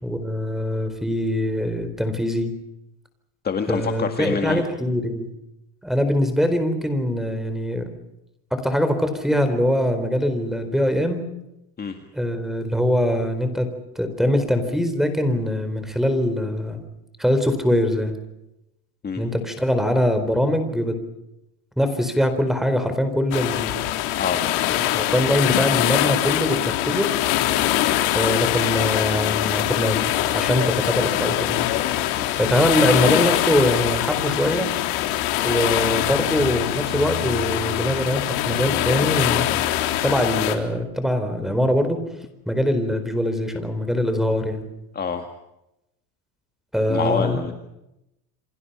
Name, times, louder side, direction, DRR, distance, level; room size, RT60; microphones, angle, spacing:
voice 1, 0.0-2.5 3.7-5.3 5.8-7.9 8.5-11.2 12.1-13.7 14.0-16.8 17.2-18.2 19.2-21.0 21.8-23.8 24.8-27.1 28.1-32.0 32.3-34.7 35.4-39.5 40.0-42.0 42.5-44.7 46.7-47.4, equal, ahead, 9 dB, 4.2 m, -23 dB
voice 2, 3.4-4.6 11.8-12.0 19.0-19.2 24.2-24.5 32.2-32.3 44.9-45.3 46.9-47.5, left 6 dB, 20° left, 5 dB, 1.9 m, -26 dB
sound 1, 23.3-40.5, left 13 dB, 80° left, 3.7 m, -23 dB
29.0 x 26.0 x 5.6 m, 0.88 s
cardioid pair, 145°, 45 cm